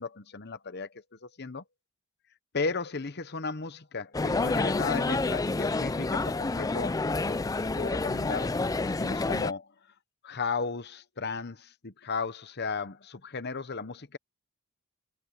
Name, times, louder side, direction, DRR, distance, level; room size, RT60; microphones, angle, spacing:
voice 1, 0.0-1.6 2.5-7.4 7.8-9.7 10.2-14.2, left 4 dB, 50° left, 1.0 m, -35 dB
sound 1, 4.1-9.5, left 3 dB, 15° left, 0.4 m, -29 dB
head